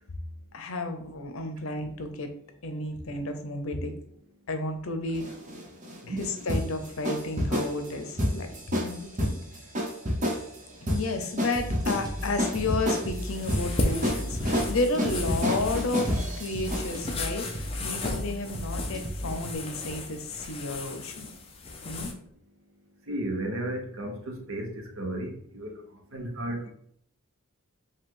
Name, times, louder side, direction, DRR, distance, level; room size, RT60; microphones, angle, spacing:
voice 1, 0.5-2.3 2.6-3.9 4.5-5.3 6.2-8.5 8.8-9.4 10.8-21.3 21.8-22.1, left 2 dB, 90° left, 7 dB, 0.7 m, -32 dB
sound 1, 5.1-17.2, equal, 40° right, 1.0 m, -30 dB
sound 2, 11.6-19.6, equal, 20° right, 0.5 m, -36 dB
sound 3, 13.1-22.1, left 2 dB, 30° left, 0.6 m, -35 dB
voice 2, 23.1-25.8 26.1-26.7, right 1 dB, 75° right, 4 dB, 0.8 m, -34 dB
5.2 x 2.3 x 3.7 m, 0.65 s
head